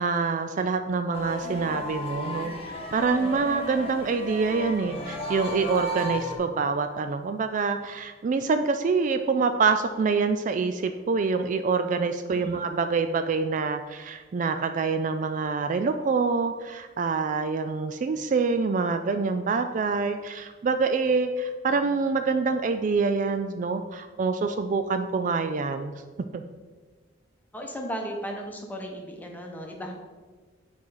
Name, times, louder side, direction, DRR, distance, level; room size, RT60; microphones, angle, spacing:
voice 1, 0.0-25.9 26.3-26.4, right 4 dB, 40° right, 8 dB, 0.3 m, -26 dB
sound 1, 1.1-6.4, equal, 30° left, 1.1 m, -34 dB
voice 2, 3.1-3.5 12.3-12.7 27.5-29.9, equal, 10° left, 1 dB, 1.0 m, -36 dB
6.1 x 4.5 x 5.6 m, 1.4 s
head